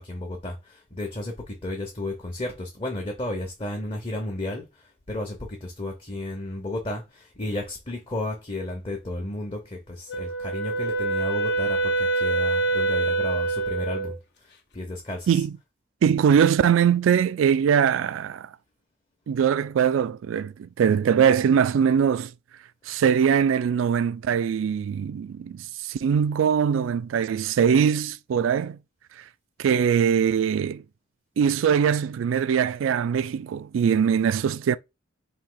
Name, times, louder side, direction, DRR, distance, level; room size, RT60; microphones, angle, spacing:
voice 1, 0.0-14.2 14.4-15.4, left 1 dB, 30° left, 0.9 m, -33 dB
Wind instrument woodwind instrument, 10.1-14.2, right 3 dB, 60° left, 0.9 m, -25 dB
voice 2, 16.0-18.5 19.3-22.3 22.9-28.8 29.6-30.8 31.4-34.8, right 7 dB, 80° right, 0.3 m, -22 dB
4.2 x 2.8 x 3.9 m
head